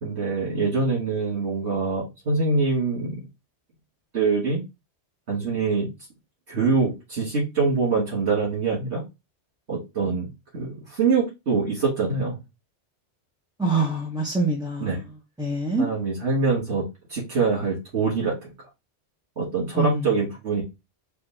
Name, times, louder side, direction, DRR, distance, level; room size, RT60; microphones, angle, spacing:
voice 1, 0.0-3.2 4.1-4.6 5.3-5.9 6.5-9.0 9.7-12.4 14.8-15.0 15.8-16.8 17.1-18.5 19.4-20.6, right 4 dB, 65° right, 2.2 m, -24 dB
voice 2, 13.6-15.0 15.4-15.9 19.7-20.0, right 3 dB, 5° right, 0.7 m, -25 dB
4.4 x 2.5 x 4.2 m
omnidirectional pair, 1.2 m